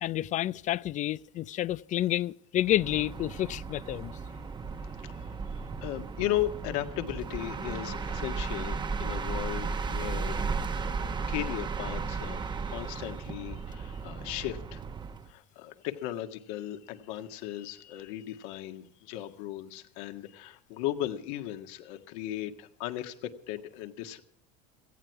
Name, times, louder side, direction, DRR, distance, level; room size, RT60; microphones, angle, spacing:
voice 1, 0.0-4.1, left 13 dB, 40° left, 0.5 m, -29 dB
sound 1, 2.6-15.3, right 4 dB, 25° right, 1.1 m, -35 dB
voice 2, 4.8-5.3 5.8-10.4 11.0-14.8 15.3-24.2, left 13 dB, 70° left, 1.8 m, -36 dB
18.0 x 15.0 x 4.6 m
supercardioid pair, 110°, 19 cm